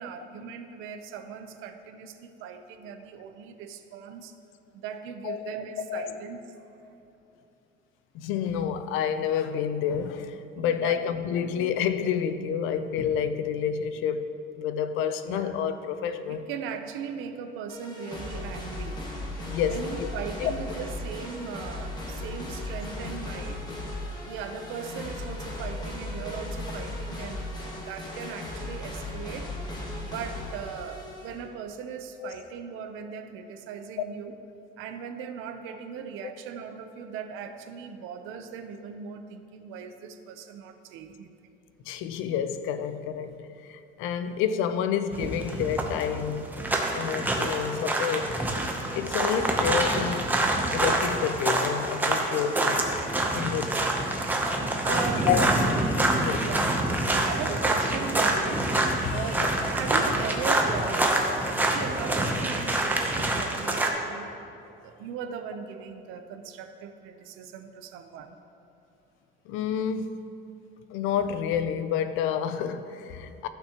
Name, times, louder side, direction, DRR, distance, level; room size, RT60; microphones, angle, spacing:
voice 1, 0.0-4.3 4.8-6.4 10.7-11.0 11.3-11.5 15.3-15.6 16.3-19.0 19.7-23.6 24.3-27.5 27.9-29.5 30.0-34.4 34.8-41.3 53.3-53.7 54.8-55.3 56.4-56.9 57.2-58.7 59.1-64.3 64.8-68.4, right 7 dB, 85° right, 0.7 m, -38 dB
voice 2, 5.9-6.2 8.1-14.3 14.6-16.5 19.5-20.1 20.4-20.5 32.2-32.3 41.9-43.3 43.7-46.5 46.9-48.3 48.9-50.3 50.7-52.8 53.3-53.8 54.9-56.5 57.1-57.3 59.0-59.5 69.5-70.2 70.9-73.5, left 8 dB, 85° left, 0.6 m, -29 dB
sound 1, 17.7-31.4, left 1 dB, 20° left, 1.2 m, -36 dB
sound 2, 45.1-63.9, right 1 dB, 10° right, 0.7 m, -26 dB
14.5 x 6.1 x 2.9 m
cardioid pair, 150°, 20 cm